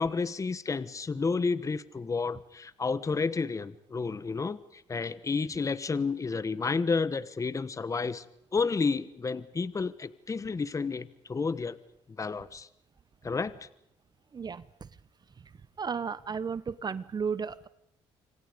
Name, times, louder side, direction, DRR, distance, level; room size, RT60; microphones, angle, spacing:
voice 1, 0.0-8.2 8.5-11.8 12.2-12.7 13.2-13.7, left 4 dB, 30° left, 16 dB, 1.3 m, -31 dB
voice 2, 14.3-14.9 15.8-17.7, right 6 dB, 35° right, 17 dB, 1.0 m, -34 dB
28.0 x 25.0 x 5.2 m, 0.78 s
supercardioid pair, 75°, 11 cm